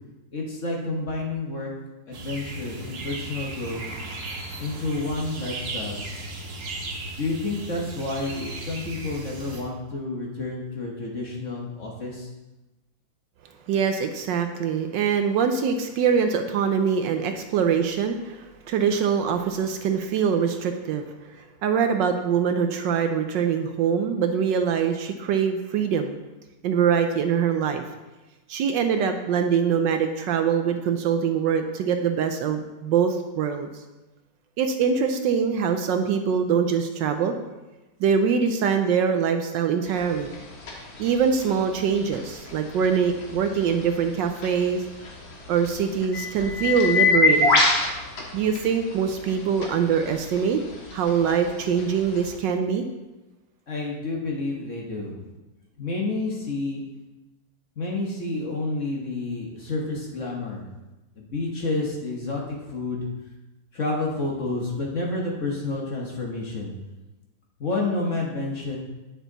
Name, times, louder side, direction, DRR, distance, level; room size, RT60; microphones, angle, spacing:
voice 1, 0.3-1.7 2.1-3.8 4.6-6.0 7.2-12.3 53.7-55.1 55.8-56.8 57.8-60.7 61.2-63.1 63.7-66.7 67.6-68.8, left 2 dB, 45° left, -1 dB, 1.4 m, -29 dB
sound 1, 2.1-9.6, right 2 dB, 55° right, 1.7 m, -36 dB
voice 2, 13.7-21.1 21.6-26.2 26.6-27.8 28.5-33.7 34.6-37.3 38.0-40.3 41.0-44.8 45.5-47.6 48.3-50.6 50.9-52.8, right 7 dB, 75° right, 7 dB, 1.2 m, -23 dB
sound 2, 39.8-52.4, left 3 dB, 80° left, 2.0 m, -28 dB
9.2 x 6.3 x 4.0 m, 1.1 s
omnidirectional pair, 2.2 m